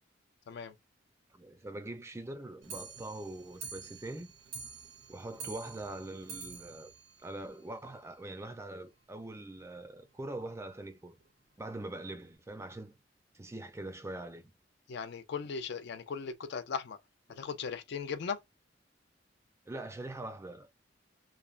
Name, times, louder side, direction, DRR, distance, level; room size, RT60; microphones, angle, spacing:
voice 1, 1.3-4.3 5.1-6.9 7.2-11.2 11.6-13.0 13.3-14.4 19.7-20.7, right 2 dB, 15° right, 0.4 m, -43 dB
Clock, 2.6-8.1 8.5-8.6 8.8-8.9 9.2-9.3 9.6-9.7 10.4-10.5 11.2-11.3 12.0-12.1, right 5 dB, 80° right, 0.5 m, -48 dB
voice 2, 14.9-17.0 17.3-18.4, left 6 dB, 65° left, 0.4 m, -38 dB
3.1 x 2.0 x 2.4 m
head